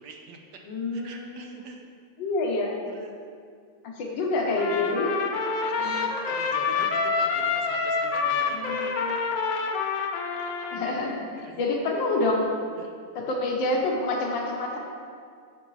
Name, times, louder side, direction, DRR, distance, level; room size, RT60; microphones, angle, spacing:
voice 1, 0.0-0.6 0.9-1.8 2.8-3.2 4.8-4.9 5.6-8.9 11.4-11.6 12.8-12.9, right 4 dB, 70° right, 2 dB, 1.3 m, -44 dB
voice 2, 0.7-1.6 2.2-2.8 4.0-5.1 8.5-9.2 10.7-12.5 13.1-14.8, left 2 dB, 85° left, 0 dB, 1.7 m, -27 dB
Trumpet, 4.6-11.2, left 5 dB, 65° left, 0.8 m, -27 dB
10.0 x 7.1 x 3.1 m, 2.2 s
omnidirectional pair, 2.0 m